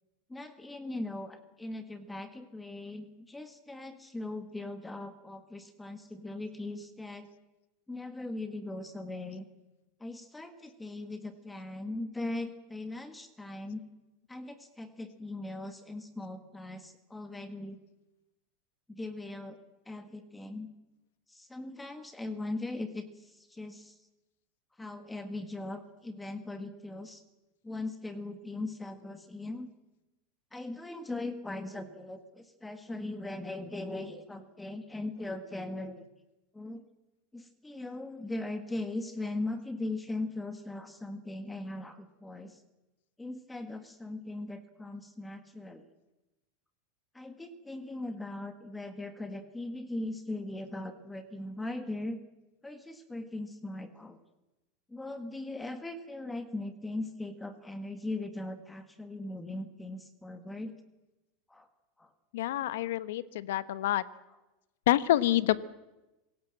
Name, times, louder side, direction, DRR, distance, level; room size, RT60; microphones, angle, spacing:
voice 1, 0.3-7.3 7.9-9.4 10.0-13.8 14.3-17.8 18.9-19.6 19.9-20.7 21.3-23.9 24.8-27.2 27.6-29.7 30.5-36.1 36.5-36.8 37.3-42.6 43.2-45.8 47.1-52.2 52.6-54.2 54.9-60.7 61.5-61.7 62.0-62.1, left 2 dB, 5° left, 9 dB, 1.7 m, -39 dB
voice 2, 62.3-64.0 64.9-65.6, left 14 dB, 80° left, 15 dB, 1.1 m, -27 dB
26.0 x 17.0 x 7.6 m, 0.99 s
supercardioid pair, 145°, 0 cm